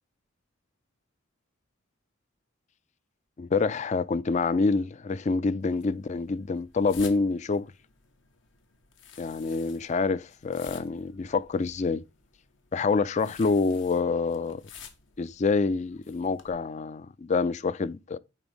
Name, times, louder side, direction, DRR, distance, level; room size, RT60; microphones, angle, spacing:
voice 1, 3.4-7.7 9.2-12.0 12.7-14.6 15.2-18.2, left 4 dB, 35° left, 0.4 m, -27 dB
sound 1, 5.6-16.5, left 7 dB, 65° left, 1.2 m, -52 dB
9.9 x 3.9 x 3.5 m
head